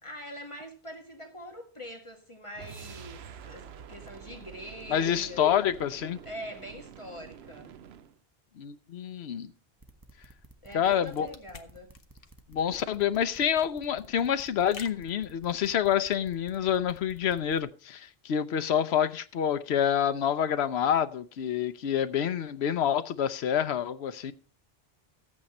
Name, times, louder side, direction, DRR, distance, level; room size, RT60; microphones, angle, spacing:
voice 1, 0.0-5.6 6.2-7.8 10.6-11.9, equal, 30° left, 1.8 m, -44 dB
sound 1, 2.6-8.2, right 8 dB, 80° right, 0.9 m, -47 dB
voice 2, 4.9-6.2 8.6-9.5 10.7-11.3 12.5-24.3, left 9 dB, 85° left, 1.0 m, -27 dB
sound 2, 9.8-17.6, right 1 dB, 20° right, 1.2 m, -54 dB
sound 3, 10.7-15.9, left 5 dB, 60° left, 1.3 m, -51 dB
14.0 x 8.7 x 4.2 m
omnidirectional pair, 1.1 m